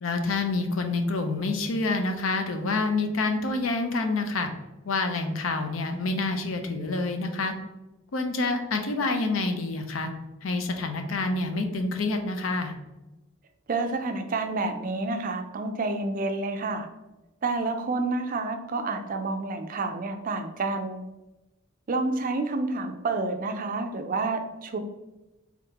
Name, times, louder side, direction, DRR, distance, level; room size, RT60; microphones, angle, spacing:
voice 1, 0.0-4.5 4.9-7.5 8.1-10.1 10.4-12.7, left 3 dB, 75° left, 6 dB, 0.5 m, -27 dB
voice 2, 13.7-16.9 17.4-21.0 21.9-24.8, right 3 dB, 40° right, 6 dB, 0.4 m, -29 dB
3.6 x 3.5 x 2.9 m, 1.0 s
head